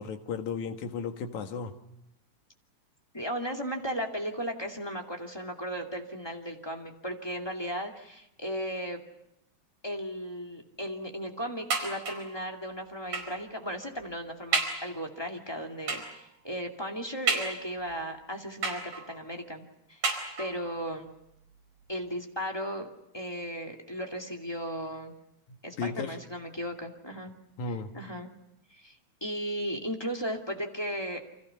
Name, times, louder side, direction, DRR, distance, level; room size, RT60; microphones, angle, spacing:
voice 1, 0.0-1.8 25.8-26.2 27.6-27.9, left 5 dB, 75° left, 6 dB, 3.0 m, -34 dB
voice 2, 3.1-9.0 9.8-18.8 19.1-21.1 21.9-22.9 23.1-25.1 25.6-27.3 27.7-28.3 28.7-29.0 29.2-31.2, equal, 10° left, 2 dB, 1.8 m, -36 dB
sound 1, 11.7-12.4 13.1-13.5 14.0-14.1 14.5-14.9 15.9-16.2 17.3-17.9 18.6-19.2 20.0-20.7 21.5-21.6 22.0-22.1, right 4 dB, 65° right, 5.8 m, -31 dB
29.5 x 25.5 x 5.7 m, 0.82 s
omnidirectional pair, 3.4 m